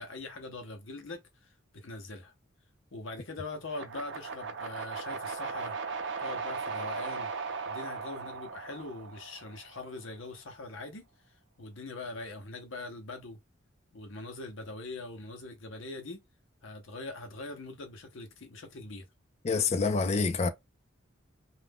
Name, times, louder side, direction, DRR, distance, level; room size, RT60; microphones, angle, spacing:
voice 1, 0.0-2.3 2.9-5.7 6.2-7.3 7.7-11.1 11.6-13.4 13.9-16.2 16.6-19.0, left 2 dB, 75° left, 0.8 m, -42 dB
sound 1, 3.7-9.8, right 5 dB, 60° right, 0.6 m, -38 dB
voice 2, 19.4-20.5, left 4 dB, 35° left, 0.4 m, -27 dB
2.5 x 2.1 x 3.5 m
head